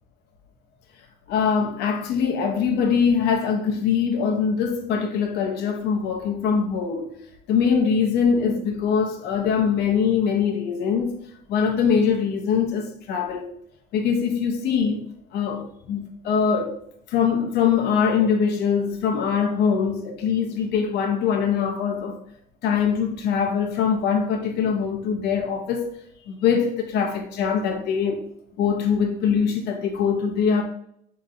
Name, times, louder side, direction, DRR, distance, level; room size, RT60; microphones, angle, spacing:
voice 1, 1.3-7.1 7.5-13.5 13.9-16.8 17.1-22.2 22.6-26.0 26.3-28.2 28.6-30.6, left 6 dB, 75° left, 0.7 m, -23 dB
6.4 x 2.9 x 2.5 m
cardioid pair, 110°, 17 cm